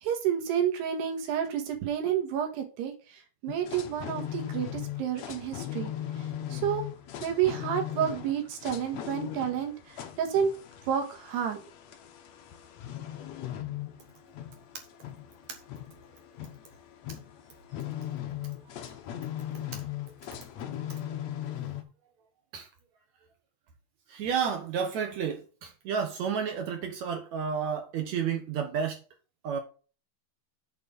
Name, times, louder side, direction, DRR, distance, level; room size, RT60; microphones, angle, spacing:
voice 1, 0.0-5.9 6.5-6.8 7.2-10.5 10.9-11.6, right 9 dB, 90° right, 3.7 m, -30 dB
sound 1, 3.5-21.8, left 11 dB, 80° left, 1.6 m, -38 dB
voice 2, 24.1-29.0 29.4-29.6, right 7 dB, 75° right, 1.7 m, -31 dB
8.8 x 4.1 x 5.2 m
omnidirectional pair, 4.6 m